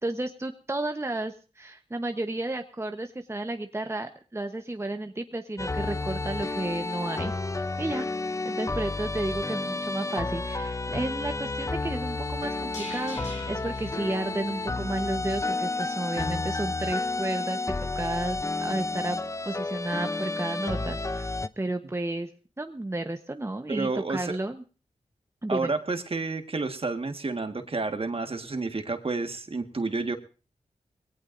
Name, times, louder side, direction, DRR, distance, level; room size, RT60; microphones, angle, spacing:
voice 1, 0.0-7.3 7.8-8.1 8.4-19.2 19.4-22.3 22.6-24.6 25.4-25.7, right 2 dB, 20° right, 6 dB, 1.0 m, -32 dB
sound 1, 5.6-21.5, left 3 dB, 25° left, 0.6 m, -31 dB
sound 2, 11.2-15.4 15.7-15.8, left 2 dB, 65° left, 5.6 m, -45 dB
voice 2, 23.7-24.4 25.5-30.2, right 3 dB, 45° right, 7 dB, 1.6 m, -30 dB
20.5 x 18.0 x 2.6 m, 0.36 s
cardioid pair, 55°, 13 cm